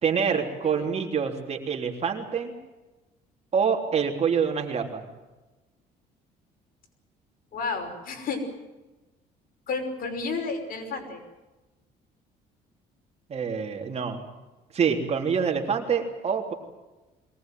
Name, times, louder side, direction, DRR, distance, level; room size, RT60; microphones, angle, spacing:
voice 1, 0.0-2.5 3.5-5.1 13.3-14.2 14.7-16.5, right 6 dB, 40° right, 3 dB, 3.6 m, -26 dB
voice 2, 7.5-8.4 9.7-11.2, left 4 dB, 60° left, 4 dB, 5.7 m, -31 dB
22.5 x 19.5 x 9.3 m, 1.1 s
cardioid pair, 110°, 17 cm